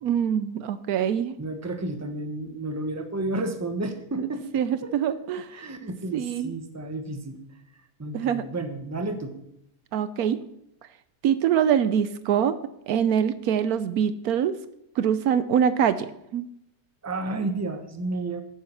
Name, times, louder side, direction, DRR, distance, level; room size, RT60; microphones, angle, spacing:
voice 1, 0.0-1.4 4.2-4.3 4.5-5.5 6.1-6.5 8.1-8.5 9.9-10.4 11.2-12.6 12.9-14.6 15.0-16.5, right 8 dB, 75° right, 13 dB, 1.1 m, -24 dB
voice 2, 1.4-5.1 5.5-7.4 8.0-9.4 17.0-18.4, right 2 dB, 10° right, 6 dB, 1.0 m, -32 dB
10.5 x 9.4 x 5.9 m, 0.78 s
omnidirectional pair, 1.6 m